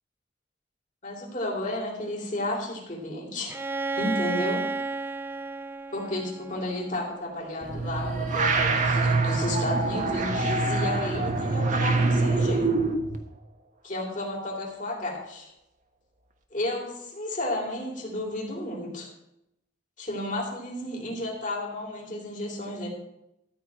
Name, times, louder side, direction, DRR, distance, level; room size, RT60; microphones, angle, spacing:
voice 1, 1.0-3.5 4.0-4.7 5.9-12.7 13.8-15.5 16.5-19.1 20.0-22.9, left 1 dB, 45° left, -2 dB, 3.7 m, -32 dB
Bowed string instrument, 3.5-7.3, right 3 dB, 10° right, 0.3 m, -32 dB
sound 1, 7.6-13.2, right 3 dB, 45° right, 1.3 m, -25 dB
14.0 x 4.6 x 8.9 m, 0.84 s
head